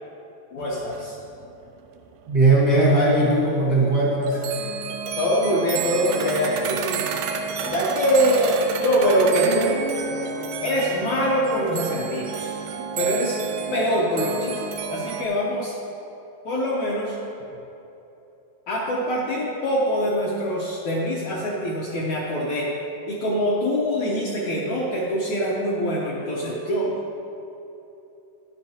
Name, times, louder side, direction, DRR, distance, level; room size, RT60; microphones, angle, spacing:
voice 1, 0.5-1.2 4.0-4.7 5.1-7.1 7.6-9.8 10.6-12.6 13.0-13.4 13.7-14.6 14.9-15.7 16.4-17.2 18.7-22.7 23.1-26.9, equal, 75° left, -5 dB, 1.7 m, -24 dB
sound 1, 0.6-0.7 0.9-2.9 3.2-3.3 3.8-3.9 4.2-15.2, right 6 dB, 85° right, 2.6 m, -30 dB
voice 2, 2.3-4.4, right 2 dB, 70° right, -7 dB, 1.0 m, -18 dB
12.5 x 10.5 x 2.9 m, 3.0 s
omnidirectional pair, 4.6 m